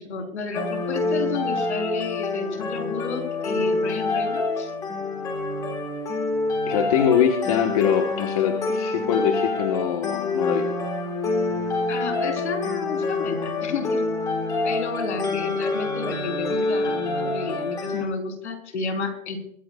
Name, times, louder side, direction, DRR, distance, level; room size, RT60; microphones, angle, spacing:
voice 1, 0.0-4.7 11.9-14.0 14.6-19.4, left 4 dB, 55° left, 4 dB, 3.8 m, -31 dB
sound 1, 0.5-18.0, left 3 dB, 10° left, 1.4 m, -27 dB
voice 2, 6.7-10.7, left 8 dB, 25° left, 3 dB, 1.2 m, -23 dB
23.5 x 14.0 x 2.3 m, 0.72 s
hypercardioid pair, 160°, 41 cm